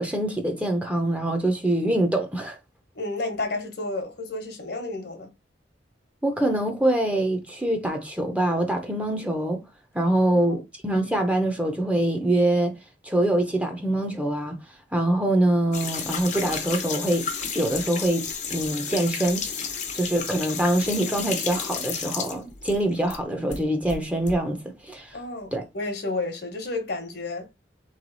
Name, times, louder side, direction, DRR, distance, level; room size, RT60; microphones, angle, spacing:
voice 1, 0.0-2.6 6.2-9.6 9.9-12.7 13.0-14.6 14.9-17.3 17.5-19.5 19.9-25.2 25.5-25.6, right 1 dB, 10° right, 0.8 m, -24 dB
voice 2, 2.9-5.3 10.3-10.6 25.1-27.5, left 2 dB, 65° left, 1.2 m, -31 dB
sound 1, 15.7-23.2 23.5-24.4, left 6 dB, 45° left, 0.8 m, -32 dB
3.8 x 3.3 x 4.0 m
head